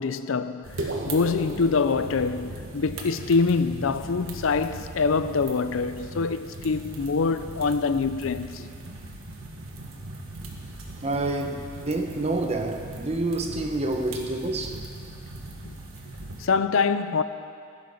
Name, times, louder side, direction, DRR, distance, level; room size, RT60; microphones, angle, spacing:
voice 1, 0.0-8.7 15.6-15.7 16.4-17.2, left 4 dB, 70° left, 0.5 m, -25 dB
sound 1, 0.6-16.4, right 2 dB, 85° right, 1.6 m, -40 dB
sound 2, 0.8-5.2, right 1 dB, 65° right, 1.3 m, -38 dB
voice 2, 11.0-14.8, right 2 dB, 30° right, 0.9 m, -28 dB
15.5 x 11.5 x 4.1 m
head